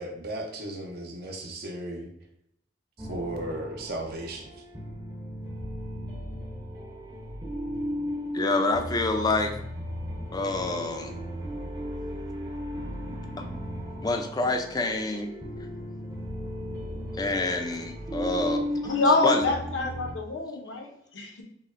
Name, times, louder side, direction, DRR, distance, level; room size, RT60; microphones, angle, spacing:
voice 1, 0.0-2.1 3.1-4.5, right 1 dB, 55° right, 2 dB, 0.7 m, -35 dB
sound 1, 3.0-20.1, equal, 20° right, 0.7 m, -35 dB
voice 2, 8.3-9.5 10.3-11.1 14.0-15.3 17.1-18.6 19.2-19.4, left 2 dB, 20° left, 5 dB, 0.4 m, -27 dB
voice 3, 18.8-21.4, left 3 dB, 80° left, 3 dB, 0.6 m, -26 dB
5.5 x 2.1 x 2.5 m, 0.75 s
head